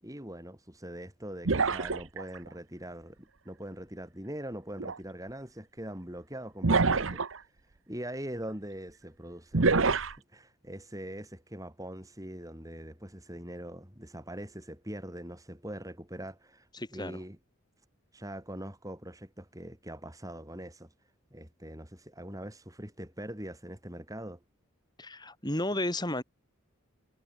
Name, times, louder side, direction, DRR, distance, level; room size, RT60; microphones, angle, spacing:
voice 1, 0.0-7.2 7.9-17.4 18.1-20.9 21.3-24.4, right 1 dB, 15° right, 6.8 m, -42 dB
sound 1, 1.5-2.4 4.8-5.0 6.6-7.4 9.5-10.1, right 4 dB, 65° right, 1.0 m, -26 dB
voice 2, 16.7-17.2 25.0-26.2, left 1 dB, 20° left, 5.5 m, -33 dB
head